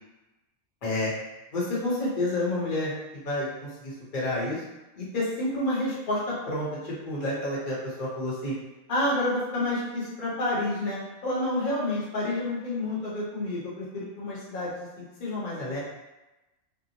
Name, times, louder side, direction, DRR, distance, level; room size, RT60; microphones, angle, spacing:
voice 1, 1.5-4.6 5.0-6.2 6.5-8.5 8.9-11.0 11.2-15.8, left 1 dB, 45° left, -7 dB, 0.9 m, -29 dB
2.7 x 2.0 x 2.7 m, 1.0 s
omnidirectional pair, 1.3 m